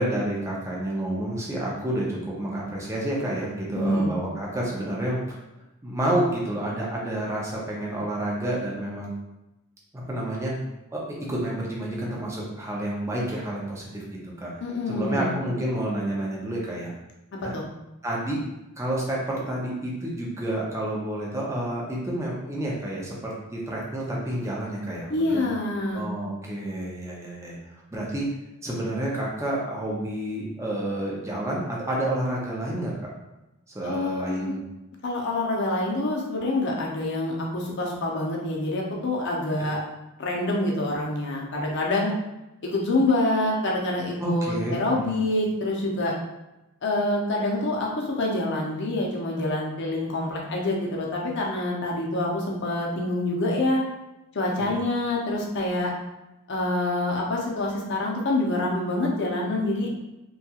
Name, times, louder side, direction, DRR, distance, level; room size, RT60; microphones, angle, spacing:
voice 1, 0.0-5.4 5.8-9.1 9.9-10.5 10.9-14.5 14.9-16.9 17.4-17.5 18.0-18.4 18.8-25.5 25.9-28.4 28.6-32.9 33.7-34.6 44.2-45.1 54.6-54.7, right 1 dB, 15° right, -4 dB, 0.5 m, -29 dB
voice 2, 3.8-4.2 14.6-15.4 17.4-17.7 25.1-26.1 33.8-34.6 35.0-39.8 40.2-42.1 42.6-46.1 46.8-53.8 54.3-55.9 56.5-59.9, left 2 dB, 55° left, -2 dB, 0.6 m, -26 dB
2.8 x 2.3 x 2.8 m, 0.97 s
head